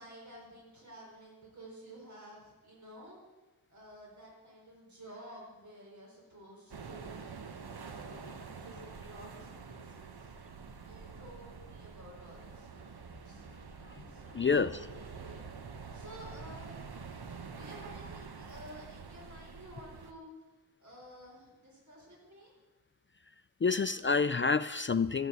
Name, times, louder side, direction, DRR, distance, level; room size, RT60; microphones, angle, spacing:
voice 1, 0.0-3.2 3.7-7.2 7.8-10.3 10.8-13.5 14.1-15.5 15.9-17.0 17.6-20.3 20.8-22.5, equal, 50° right, -3 dB, 4.4 m, -52 dB
sound 1, 6.7-20.1, right 5 dB, 85° right, 1.1 m, -47 dB
voice 2, 14.3-14.7 23.6-25.3, left 5 dB, 35° left, 13 dB, 0.4 m, -28 dB
15.0 x 8.1 x 8.0 m, 1.2 s
wide cardioid pair, 80°, 37 cm